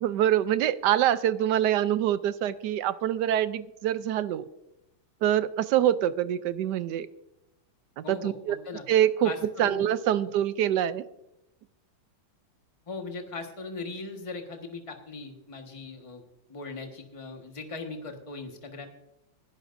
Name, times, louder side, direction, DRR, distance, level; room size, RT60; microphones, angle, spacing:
voice 1, 0.0-4.4 5.2-7.1 8.0-8.6 8.9-9.3 9.6-11.0, right 11 dB, 70° right, 14 dB, 1.1 m, -25 dB
voice 2, 8.0-8.8 9.2-9.9 12.9-16.2 16.5-18.9, left 3 dB, 20° left, 3 dB, 1.3 m, -39 dB
20.0 x 11.0 x 2.6 m, 0.87 s
omnidirectional pair, 2.1 m